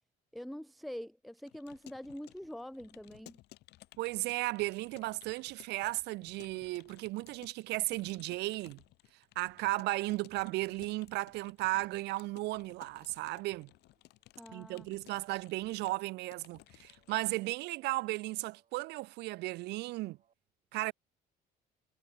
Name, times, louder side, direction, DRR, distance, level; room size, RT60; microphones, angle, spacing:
voice 1, 0.3-3.4 14.4-14.9, equal, ahead, 0.3 m, -45 dB
Keyboard (musical) / Computer keyboard, 1.4-17.5, left 17 dB, 80° left, 2.2 m, -59 dB
voice 2, 4.0-8.8 9.4-13.7 14.5-20.2 20.7-20.9, right 20 dB, 80° right, 0.5 m, -35 dB
sound 1, 10.0-20.3, right 7 dB, 45° right, 5.2 m, -77 dB
cardioid pair, 110°, 17 cm